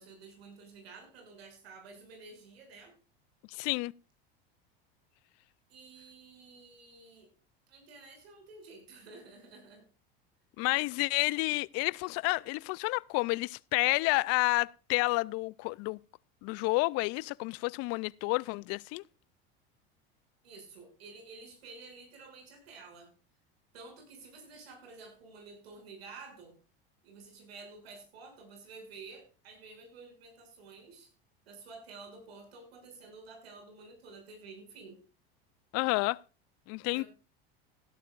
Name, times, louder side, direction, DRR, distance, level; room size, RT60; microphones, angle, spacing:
voice 1, 0.0-2.9 5.7-7.3 7.7-9.8 20.4-23.1 23.7-26.5 27.0-31.1 31.4-35.0 36.9-37.1, right 4 dB, 85° right, 6.7 m, -51 dB
voice 2, 3.5-3.9 10.6-16.0 16.4-19.0 35.7-36.2 36.7-37.0, left 24 dB, 55° left, 0.5 m, -30 dB
17.0 x 11.5 x 2.5 m
supercardioid pair, 100°, 30 cm